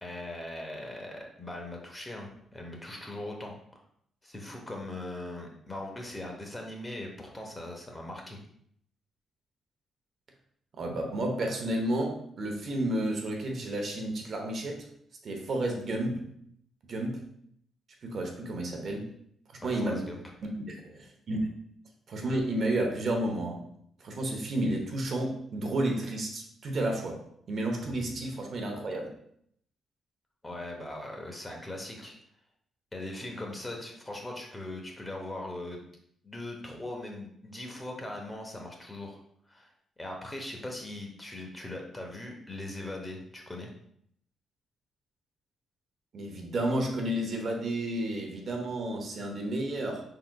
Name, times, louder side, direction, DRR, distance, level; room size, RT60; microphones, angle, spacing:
voice 1, 0.0-3.8 4.2-8.4 19.6-20.2 30.4-32.2 32.9-35.8 36.2-39.2 39.5-39.7 40.0-43.7, left 1 dB, 15° left, 1 dB, 0.9 m, -40 dB
voice 2, 10.7-14.9 15.2-16.2 16.9-17.2 18.0-19.1 19.6-20.0 20.6-21.5 22.1-23.6 24.0-27.2 27.5-29.1 46.1-50.0, right 1 dB, 50° right, 2 dB, 0.9 m, -31 dB
5.8 x 3.8 x 2.2 m, 0.68 s
cardioid pair, 110°, 0 cm